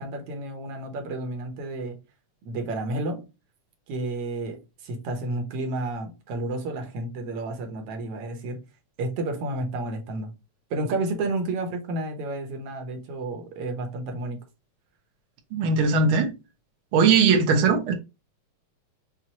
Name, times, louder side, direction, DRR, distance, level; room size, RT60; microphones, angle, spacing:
voice 1, 0.0-2.0 2.4-3.3 3.9-8.6 9.0-10.3 10.7-14.4, right 2 dB, 65° right, 1.6 m, -31 dB
voice 2, 15.5-16.3 16.9-17.9, right 5 dB, 85° right, 1.2 m, -19 dB
5.9 x 2.5 x 2.9 m
omnidirectional pair, 3.4 m